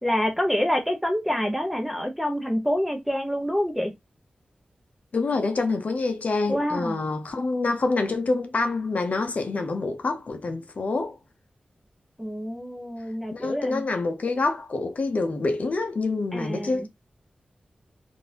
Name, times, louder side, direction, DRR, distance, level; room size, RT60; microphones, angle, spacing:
voice 1, 0.0-3.9 6.5-7.0 12.2-13.8 16.3-16.9, equal, ahead, 0.8 m, -27 dB
voice 2, 5.1-11.2 13.3-16.9, left 3 dB, 60° left, 0.7 m, -26 dB
3.7 x 2.6 x 2.8 m
wide cardioid pair, 90°, 3 cm